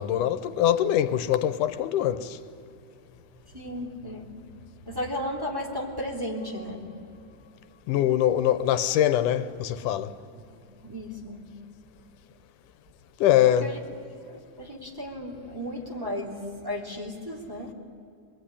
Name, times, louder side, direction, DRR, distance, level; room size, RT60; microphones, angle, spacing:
voice 1, 0.0-2.4 7.9-10.1 13.2-13.7, left 11 dB, 90° left, 2.5 m, -23 dB
voice 2, 3.5-4.4 4.8-7.0 10.7-11.4 13.5-13.8 14.3-17.7, left 1 dB, 5° right, 3.0 m, -35 dB
25.0 x 21.5 x 10.0 m
omnidirectional pair, 3.5 m